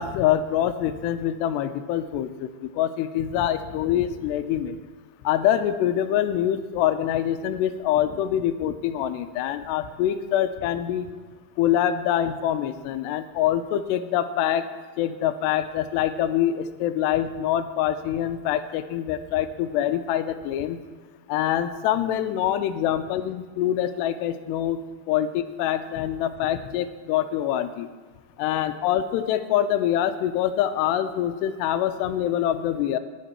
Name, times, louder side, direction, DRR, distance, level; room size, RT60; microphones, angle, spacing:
voice 1, 0.0-4.8 5.2-11.1 11.6-14.6 15.0-20.8 21.3-24.8 25.1-27.9 28.4-33.0, left 11 dB, 85° left, 9 dB, 2.8 m, -25 dB
19.0 x 11.0 x 4.4 m, 1.4 s
omnidirectional pair, 4.8 m